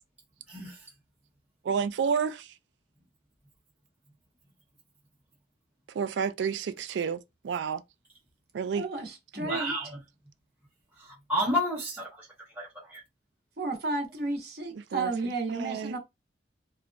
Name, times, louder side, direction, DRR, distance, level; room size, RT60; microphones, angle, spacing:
voice 1, 0.5-0.9 9.4-10.0 10.9-13.0, equal, 10° right, 0.7 m, -32 dB
voice 2, 1.6-2.5 5.9-7.8 8.5-8.8 14.9-15.1 15.5-16.0, right 6 dB, 80° right, 0.3 m, -30 dB
voice 3, 8.7-9.8 13.6-16.0, right 3 dB, 60° right, 0.7 m, -32 dB
2.7 x 2.1 x 2.5 m
head